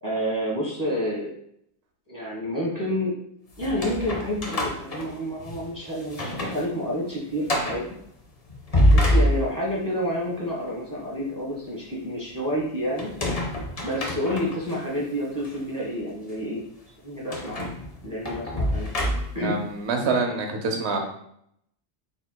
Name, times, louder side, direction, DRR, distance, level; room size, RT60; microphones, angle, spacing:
voice 1, 0.0-1.3 2.1-3.1 3.6-7.8 8.9-13.1 13.8-16.6 17.0-17.7 18.0-18.9 19.3-19.6, equal, 20° right, -6 dB, 1.0 m, -29 dB
sound 1, 3.6-5.7 6.1-6.6 7.0-7.1 7.5-7.9 8.5-9.8 13.0-14.8 15.4-15.5 17.3-19.5, equal, 40° left, 0.6 m, -25 dB
voice 2, 19.1-21.0, right 4 dB, 70° right, 3 dB, 1.0 m, -27 dB
4.3 x 3.8 x 2.2 m, 0.71 s
omnidirectional pair, 1.2 m